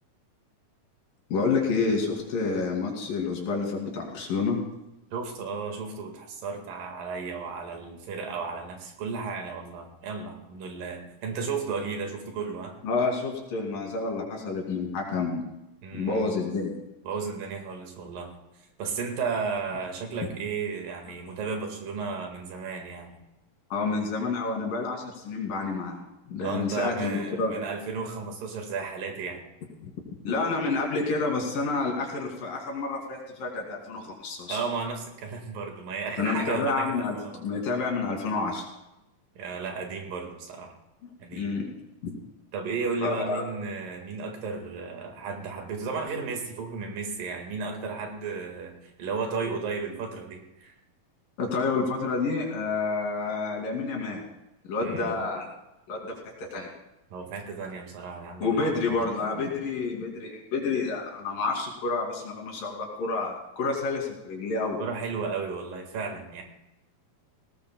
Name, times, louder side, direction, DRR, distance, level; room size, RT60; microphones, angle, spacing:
voice 1, 1.3-4.6 12.8-15.4 15.9-16.8 23.7-27.6 29.8-29.9 30.2-34.6 36.2-38.6 41.3-41.7 42.0-42.1 43.0-43.4 51.4-54.2 54.6-55.5 55.9-56.7 58.4-64.8, left 4 dB, 70° left, 0 dB, 4.3 m, -29 dB
voice 2, 5.1-12.7 15.8-16.3 17.0-18.3 18.8-23.2 26.4-29.4 34.5-37.4 39.4-40.7 41.2-41.5 42.5-50.7 54.8-55.2 57.1-59.0 64.8-66.4, right 5 dB, 70° right, 3 dB, 3.4 m, -34 dB
19.5 x 18.0 x 2.3 m, 0.93 s
omnidirectional pair, 4.2 m